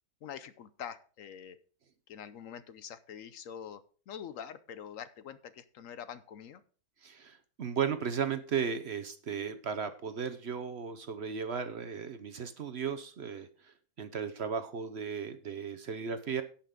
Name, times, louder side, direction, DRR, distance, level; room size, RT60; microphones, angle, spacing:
voice 1, 0.2-1.6 2.1-6.6, left 8 dB, 70° left, 13 dB, 1.0 m, -45 dB
voice 2, 7.0-16.4, right 7 dB, 50° right, 10 dB, 0.9 m, -35 dB
17.0 x 5.8 x 3.7 m, 0.41 s
omnidirectional pair, 1.6 m